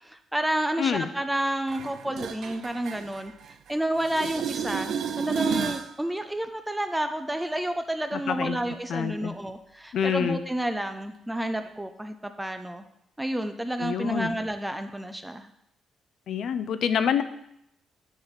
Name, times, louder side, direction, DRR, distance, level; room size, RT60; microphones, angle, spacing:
voice 1, 0.0-3.3 3.7-12.8 13.2-15.5, right 1 dB, 5° right, 8 dB, 0.5 m, -30 dB
voice 2, 0.8-1.1 8.1-8.6 8.9-9.3 9.9-10.4 13.8-14.3 16.3-17.2, left 8 dB, 65° left, 11 dB, 0.6 m, -27 dB
sound 1, 1.7-3.7 4.0-5.9 11.7-11.8, right 7 dB, 65° right, 0.6 m, -32 dB
9.9 x 4.1 x 7.2 m, 0.76 s
cardioid pair, 150°, 0 cm